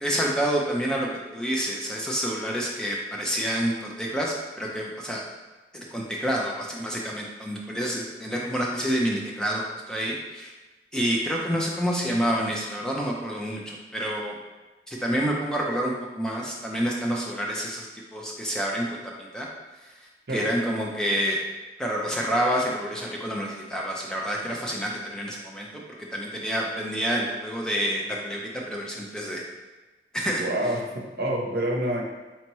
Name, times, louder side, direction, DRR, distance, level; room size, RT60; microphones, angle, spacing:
voice 1, 0.0-5.2 5.7-10.5 10.9-14.4 14.9-17.9 18.1-19.5 20.3-21.4 21.8-28.4 28.7-29.4 30.1-30.4, equal, 5° left, -2 dB, 0.5 m, -28 dB
voice 2, 30.4-32.0, right 1 dB, 60° right, -1 dB, 0.7 m, -27 dB
4.4 x 2.8 x 3.0 m, 1.2 s
head